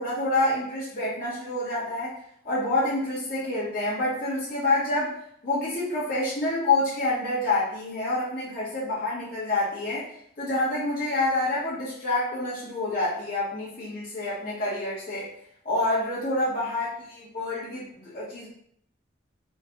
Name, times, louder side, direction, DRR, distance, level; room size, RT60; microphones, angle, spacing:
voice 1, 0.0-2.1 2.4-5.1 5.4-10.1 10.4-15.3 15.6-16.9 17.3-18.5, left 2 dB, 45° left, -10 dB, 1.6 m, -27 dB
3.8 x 2.6 x 3.9 m, 0.67 s
head